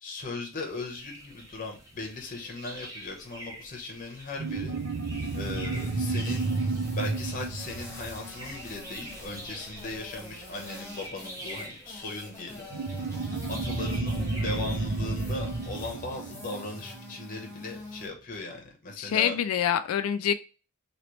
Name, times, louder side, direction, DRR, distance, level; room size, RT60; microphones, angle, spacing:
voice 1, 0.0-4.8 5.3-6.5 6.9-12.7 13.5-19.4, left 2 dB, 40° left, 1 dB, 0.9 m, -38 dB
sound 1, 0.6-15.9, right 1 dB, 15° right, 0.9 m, -46 dB
sound 2, 4.4-18.1, left 2 dB, 10° left, 1.3 m, -46 dB
sound 3, 4.4-9.3 12.7-17.6, right 3 dB, 55° right, 0.6 m, -32 dB
voice 2, 19.0-20.3, left 9 dB, 75° left, 11 dB, 0.3 m, -26 dB
3.0 x 2.9 x 3.1 m, 0.33 s
head